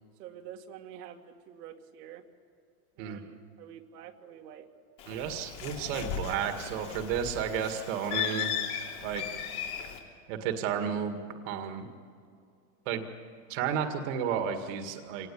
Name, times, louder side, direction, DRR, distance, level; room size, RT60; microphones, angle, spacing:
voice 1, 0.2-2.2 3.0-4.7, right 9 dB, 75° right, 2 dB, 2.1 m, -47 dB
Bird, 5.0-10.0, left 9 dB, 50° left, 3.5 m, -36 dB
voice 2, 5.1-8.5 9.0-9.4 10.3-11.2 11.5-11.9 12.9-13.0 13.5-15.3, right 8 dB, 50° right, 6 dB, 2.0 m, -32 dB
25.5 x 18.5 x 8.6 m, 2.3 s
supercardioid pair, 150°, 47 cm